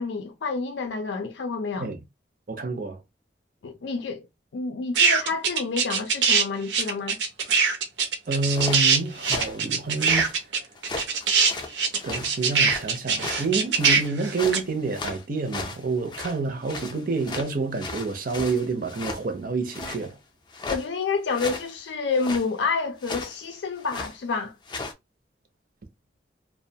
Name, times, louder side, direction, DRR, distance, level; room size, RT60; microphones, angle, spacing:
voice 1, 0.0-1.9 3.6-4.3 4.5-7.2 20.7-24.5, left 4 dB, 85° left, 0.4 m, -29 dB
voice 2, 2.5-3.0 8.3-10.3 12.0-20.2, right 3 dB, 50° right, 0.5 m, -28 dB
sound 1, 4.9-6.4 6.7-14.6, right 5 dB, 85° right, 0.6 m, -22 dB
sound 2, 8.3-10.4 10.8-12.9 13.2-16.4 16.6-19.2 19.7-20.1 20.5-20.9 21.3-21.7 22.1-22.5 23.0-23.4 23.8-24.2 24.7-24.9, left 3 dB, 25° left, 0.4 m, -36 dB
2.4 x 2.1 x 2.7 m
head